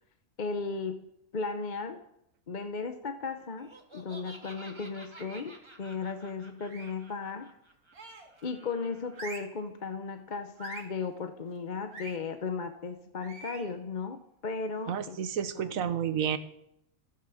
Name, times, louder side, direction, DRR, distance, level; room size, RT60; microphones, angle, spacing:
voice 1, 0.4-2.0 2.5-7.5 8.4-15.2 15.6-15.8, left 4 dB, 40° left, 8 dB, 0.8 m, -36 dB
Laughter, 3.6-9.2, right 1 dB, 20° right, 1.5 m, -52 dB
sound 1, 5.1-5.6 6.6-7.1 7.9-8.4 9.1-9.6 10.6-11.0 11.9-12.2 13.2-13.7, right 3 dB, 90° right, 2.6 m, -44 dB
voice 2, 14.9-16.4, right 8 dB, 70° right, 12 dB, 1.3 m, -30 dB
15.5 x 14.0 x 4.9 m, 0.78 s
omnidirectional pair, 1.5 m